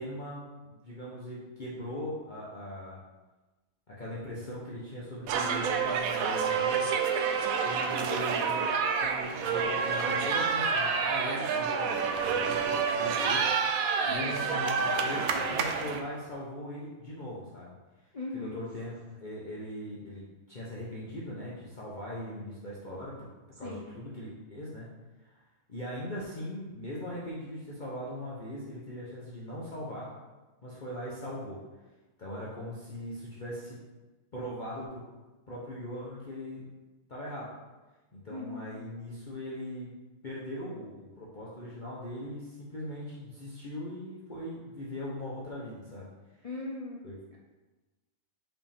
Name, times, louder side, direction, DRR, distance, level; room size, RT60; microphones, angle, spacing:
voice 1, 0.0-3.0 3.9-7.2 7.6-8.7 9.0-13.5 14.0-17.7 18.3-23.3 23.6-24.9 25.2-25.4 25.7-30.1 30.6-31.6 32.2-33.8 34.3-35.0 35.5-36.7 37.1-37.5 38.1-39.9 40.2-46.1 46.4-46.5 47.0-47.2, equal, 40° left, -7 dB, 1.0 m, -40 dB
sound 1, 5.3-16.0, right 5 dB, 85° right, 1.0 m, -28 dB
voice 2, 14.0-14.5 18.1-18.6 23.6-23.9 38.3-38.7 46.4-47.0, left 3 dB, 55° left, -3 dB, 0.4 m, -39 dB
5.6 x 4.9 x 3.5 m, 1.2 s
omnidirectional pair, 1.4 m